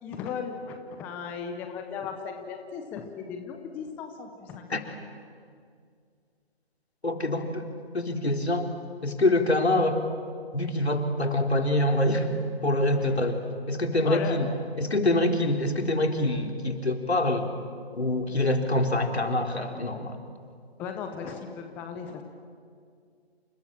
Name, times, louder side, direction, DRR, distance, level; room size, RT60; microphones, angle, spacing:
voice 1, 0.0-4.9 13.0-13.2 14.0-14.5 20.8-22.2, left 6 dB, 5° left, 5 dB, 0.7 m, -37 dB
voice 2, 7.0-7.6 7.9-8.7 9.0-10.0 10.5-12.3 12.6-13.4 13.7-14.5 14.8-17.5 17.9-20.2, left 1 dB, 80° left, 4 dB, 3.9 m, -25 dB
28.5 x 28.0 x 7.4 m, 2.2 s
figure-of-eight pair, 150°, 32 cm